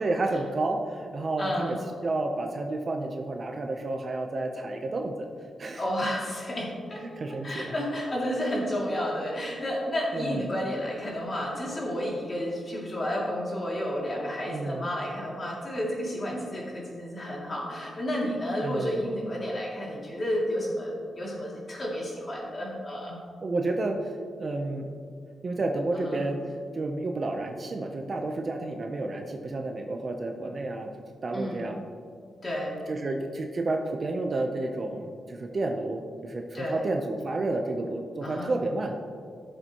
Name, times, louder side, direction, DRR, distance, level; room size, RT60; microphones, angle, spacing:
voice 1, 0.0-1.8 2.0-5.3 5.6-6.1 7.0-7.7 10.1-10.4 14.5-14.9 18.6-19.0 23.4-24.1 24.4-24.9 25.4-26.4 26.7-30.9 31.2-31.8 32.9-39.0, right 2 dB, 35° right, 3 dB, 0.6 m, -30 dB
voice 2, 1.4-1.8 5.7-7.0 7.4-23.2 26.0-26.2 31.3-31.7 32.4-32.8 36.5-36.8 38.2-38.5, equal, 30° left, -4 dB, 2.5 m, -31 dB
16.0 x 6.8 x 3.0 m, 2.2 s
wide cardioid pair, 160°, 0 cm